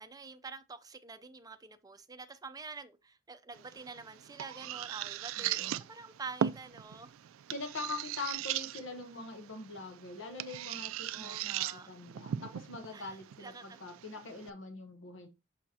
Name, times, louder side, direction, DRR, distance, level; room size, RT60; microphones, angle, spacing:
voice 1, 0.0-7.2 11.1-11.9 12.9-13.8, right 4 dB, 20° right, 0.5 m, -47 dB
sound 1, 3.5-14.5, right 10 dB, 85° right, 0.3 m, -39 dB
voice 2, 5.4-5.8 7.5-15.3, left 3 dB, 65° left, 0.9 m, -43 dB
6.2 x 5.8 x 2.8 m
head